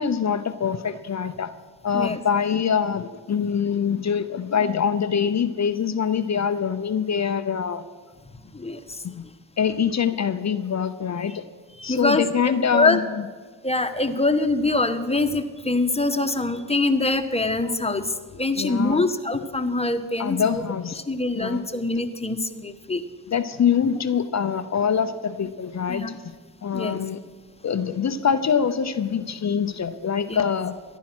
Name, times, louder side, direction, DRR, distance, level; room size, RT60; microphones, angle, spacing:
voice 1, 0.0-1.5 1.8-7.8 9.0-9.2 9.6-11.4 11.8-13.2 18.6-19.0 20.2-21.0 21.3-21.7 23.3-26.4 26.6-27.2 27.6-30.8, left 7 dB, 40° left, 10 dB, 0.8 m, -24 dB
voice 2, 8.5-9.0 11.8-12.2 12.7-13.0 13.6-20.6 21.1-23.0 25.9-26.1 26.7-27.0 30.3-30.4, left 2 dB, 15° left, 8 dB, 1.3 m, -24 dB
14.5 x 10.5 x 6.2 m, 1.4 s
supercardioid pair, 65°, 41 cm